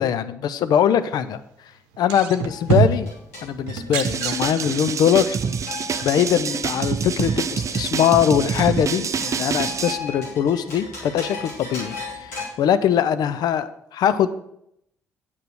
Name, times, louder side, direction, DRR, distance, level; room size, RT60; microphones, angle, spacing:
voice 1, 0.0-1.4 2.0-3.1 3.4-5.4 6.0-14.3, left 9 dB, 55° left, 12 dB, 0.6 m, -21 dB
sound 1, 1.9-3.1 3.7-5.0 6.0-6.1, right 7 dB, 70° right, 0.8 m, -24 dB
sound 2, 2.5-12.4, left 3 dB, 80° left, 3.2 m, -37 dB
sound 3, 4.0-10.0, right 6 dB, 40° right, 0.5 m, -26 dB
9.3 x 5.6 x 6.2 m, 0.77 s
figure-of-eight pair, 45°, 8 cm